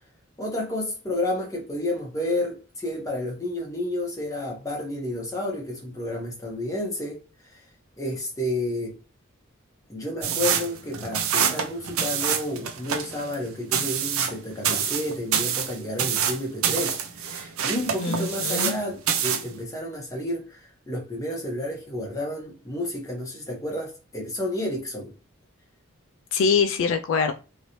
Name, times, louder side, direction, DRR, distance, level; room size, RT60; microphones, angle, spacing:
voice 1, 0.4-7.2 7.5-7.6 8.0-8.9 9.9-25.1, left 1 dB, 15° left, 1.0 m, -31 dB
sound 1, 10.2-18.8 19.1-19.5, right 8 dB, 75° right, 0.5 m, -26 dB
voice 2, 18.0-18.8 26.3-27.3, left 5 dB, 65° left, 0.3 m, -23 dB
3.0 x 2.7 x 3.0 m
head